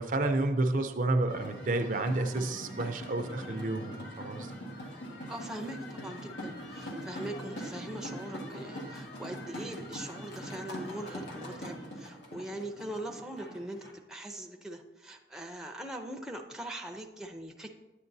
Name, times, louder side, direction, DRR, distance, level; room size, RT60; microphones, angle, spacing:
voice 1, 0.0-4.5, right 2 dB, 45° right, 6 dB, 0.5 m, -30 dB
sound 1, 1.3-13.9, equal, 90° left, 1.6 m, -42 dB
voice 2, 5.3-17.7, right 1 dB, 5° right, 3 dB, 0.5 m, -41 dB
10.0 x 8.9 x 2.7 m, 1.1 s
head